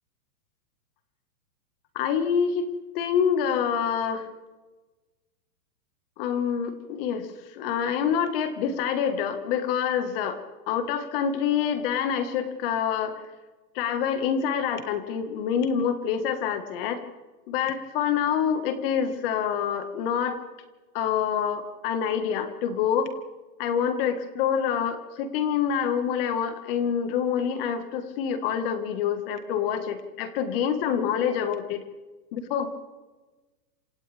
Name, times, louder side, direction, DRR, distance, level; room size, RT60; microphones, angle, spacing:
voice 1, 2.0-4.3 6.2-10.4 10.7-13.1 13.8-17.0 17.5-20.4 20.9-23.1 23.6-31.9 32.3-32.7, left 8 dB, 35° left, 8 dB, 1.8 m, -26 dB
28.0 x 26.5 x 3.5 m, 1.2 s
hypercardioid pair, 155°, 49 cm